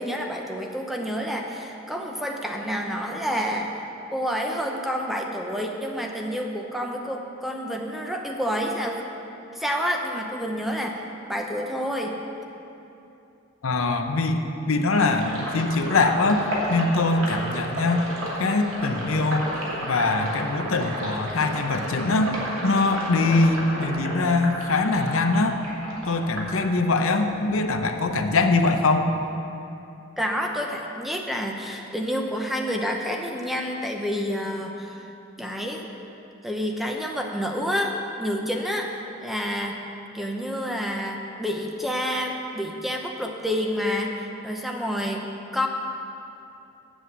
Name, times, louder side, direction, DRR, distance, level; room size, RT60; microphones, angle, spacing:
voice 1, 0.0-3.8 4.1-9.0 9.5-12.2 30.2-35.0 35.4-35.9 36.4-38.9 39.2-39.8 40.1-45.3 45.5-45.7, equal, ahead, 1 dB, 0.7 m, -28 dB
voice 2, 13.6-14.4 14.7-16.4 16.7-18.1 18.4-19.5 19.8-22.3 22.6-25.6 26.1-29.1, left 3 dB, 75° left, 5 dB, 0.7 m, -22 dB
Sink (filling or washing), 15.0-27.2 27.6-29.0, equal, 70° right, 2.5 m, -32 dB
8.0 x 7.7 x 8.0 m, 2.9 s
head